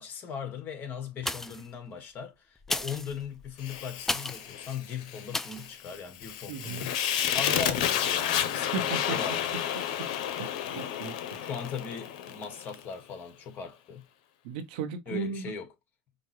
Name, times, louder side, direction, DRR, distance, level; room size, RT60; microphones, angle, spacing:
voice 1, 0.0-9.7 11.4-14.0 15.1-15.7, left 6 dB, 50° left, 1.5 m, -39 dB
sound 1, 1.2-1.7 2.6-4.5 5.3-5.7 6.2-6.3, left 2 dB, 10° left, 0.4 m, -34 dB
Fire, 3.6-12.8, left 10 dB, 90° left, 0.7 m, -31 dB
voice 2, 6.5-6.8 8.7-9.2 10.7-11.5 14.4-15.5, right 5 dB, 90° right, 0.9 m, -35 dB
5.0 x 2.1 x 3.0 m
supercardioid pair, 105°, 4 cm